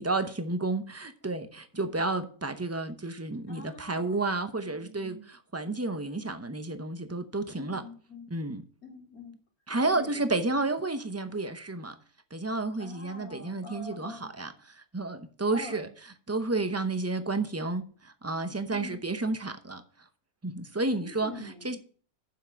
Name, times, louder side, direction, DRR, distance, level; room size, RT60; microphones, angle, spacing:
voice 1, 0.0-7.8 8.3-8.6 9.7-11.9 12.3-14.5 14.9-15.9 16.3-19.8 20.4-21.3 21.6-21.8, right 2 dB, 15° right, 0.5 m, -31 dB
voice 2, 3.5-4.3 4.6-5.2 7.5-8.3 8.8-9.3 9.8-10.2 10.5-10.7 12.8-14.3 15.5-15.9 18.7-19.0 20.9-21.7, left 3 dB, 80° left, 3.2 m, -45 dB
7.4 x 6.1 x 7.1 m
omnidirectional pair, 1.5 m